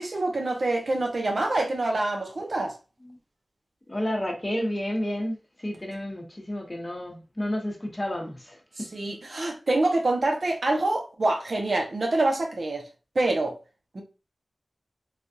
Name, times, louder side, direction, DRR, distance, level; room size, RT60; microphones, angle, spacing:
voice 1, 0.0-2.7 8.8-12.9 13.1-13.6 13.9-14.0, right 2 dB, 60° right, 0.7 m, -26 dB
voice 2, 3.9-8.6, left 1 dB, 25° left, 0.9 m, -31 dB
3.3 x 2.4 x 2.6 m
wide cardioid pair, 75°, 0 cm